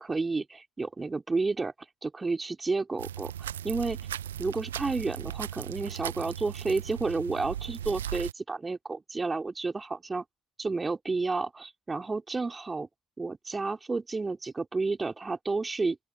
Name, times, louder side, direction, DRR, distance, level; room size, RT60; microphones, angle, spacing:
voice 1, 0.0-1.7 2.0-4.0 4.4-10.3 10.6-12.9 13.2-16.0, right 3 dB, 25° right, 4.1 m, -31 dB
sound 1, 3.0-8.3, right 10 dB, 80° right, 0.9 m, -37 dB
open air
figure-of-eight pair, 55°, 0 cm